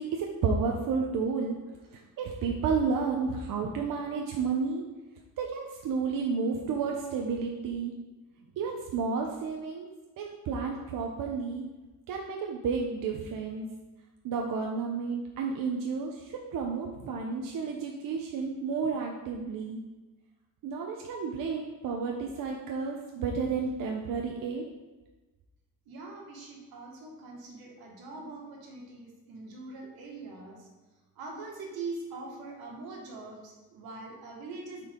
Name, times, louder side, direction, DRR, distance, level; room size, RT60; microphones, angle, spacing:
voice 1, 0.0-1.6 2.2-4.8 5.4-7.9 8.6-9.9 10.2-11.6 12.1-13.6 14.2-19.8 20.6-24.6, right 5 dB, 65° right, 0 dB, 0.9 m, -31 dB
voice 2, 25.9-30.7 31.2-34.9, right 3 dB, 90° right, 0 dB, 1.8 m, -42 dB
8.8 x 4.6 x 3.8 m, 1.2 s
cardioid pair, 155°, 35 cm